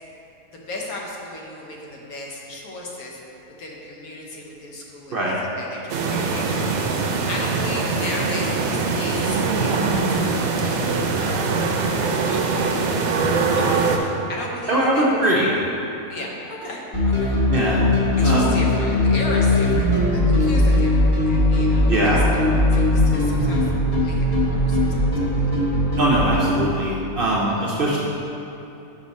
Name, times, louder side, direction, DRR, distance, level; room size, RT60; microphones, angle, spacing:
voice 1, 0.5-3.2 3.6-12.9 13.6-14.0 14.3-15.3 16.1-17.4 18.2-22.2 22.7-23.7 24.0-25.5 27.5-27.8, left 1 dB, 80° left, -2 dB, 1.3 m, -35 dB
sound 1, 5.9-14.0, right 4 dB, 75° right, 1.0 m, -22 dB
voice 2, 14.7-15.5 17.5-17.8 18.2-18.6 21.8-22.3 26.0-28.0, right 1 dB, 55° right, -4 dB, 0.7 m, -21 dB
sound 2, 16.9-26.5, left 1 dB, 35° left, 1.2 m, -19 dB
5.5 x 5.2 x 4.1 m, 2.9 s
omnidirectional pair, 1.5 m